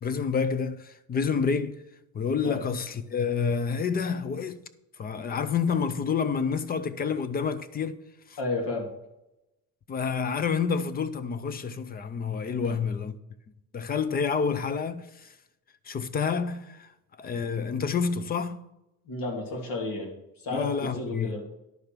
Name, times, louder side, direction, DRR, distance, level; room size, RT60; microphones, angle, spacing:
voice 1, 0.0-1.8 2.1-4.6 5.0-8.0 8.3-8.4 9.9-13.2 13.7-15.3 15.9-16.9 17.2-18.6 20.5-21.4, left 6 dB, 25° left, 0.4 m, -28 dB
voice 2, 8.4-8.9 12.6-12.8 19.1-21.4, left 2 dB, 70° left, 2.7 m, -32 dB
11.0 x 5.1 x 5.9 m
cardioid pair, 175°, 35 cm